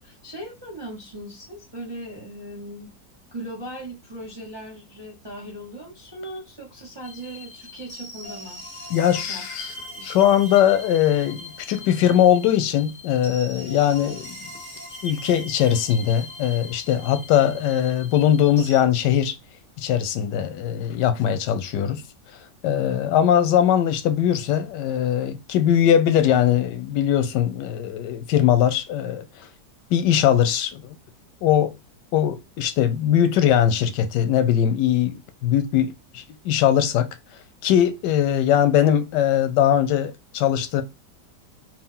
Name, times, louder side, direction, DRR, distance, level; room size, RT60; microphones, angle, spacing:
voice 1, 0.0-2.9 3.3-8.6 9.1-10.7, right 1 dB, 30° right, 0.5 m, -39 dB
sound 1, 7.0-18.8, left 1 dB, 25° left, 1.4 m, -40 dB
voice 2, 8.9-9.7 10.0-14.3 15.0-19.3 19.8-22.0 22.6-29.2 29.9-30.9 31.4-31.7 32.1-37.1 37.6-40.8, left 10 dB, 90° left, 1.2 m, -20 dB
3.5 x 2.4 x 3.6 m
omnidirectional pair, 1.8 m